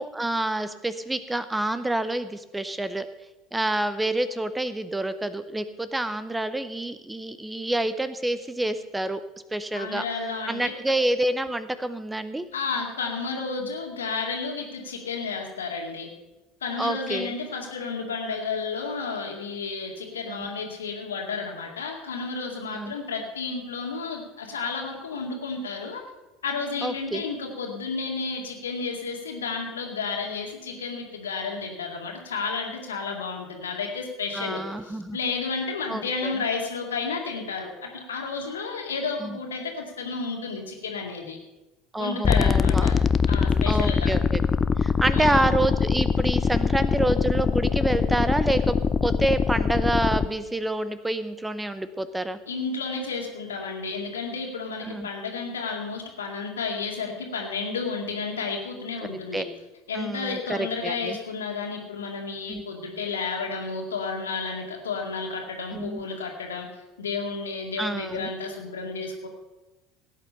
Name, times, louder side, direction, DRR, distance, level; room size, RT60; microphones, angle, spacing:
voice 1, 0.0-3.1 3.5-9.2 9.5-10.0 10.5-12.5 16.8-17.3 20.3-20.5 22.7-22.9 26.8-27.2 34.3-35.2 35.9-36.3 39.2-39.4 41.9-43.0 43.7-44.4 44.8-48.8 49.0-52.4 54.8-55.1 59.1-59.4 59.9-61.2 62.5-62.6 65.7-66.0 67.8-68.3, right 1 dB, 10° right, 13 dB, 0.8 m, -28 dB
voice 2, 9.7-10.7 12.5-16.1 16.6-26.0 26.4-41.4 42.0-43.0 43.3-44.2 45.1-45.6 52.5-59.5 59.9-69.3, left 4 dB, 75° left, 2 dB, 2.2 m, -32 dB
sound 1, 42.2-50.3, left 6 dB, 30° left, 0.5 m, -23 dB
16.5 x 9.1 x 5.6 m, 1.0 s
figure-of-eight pair, 70°, 0 cm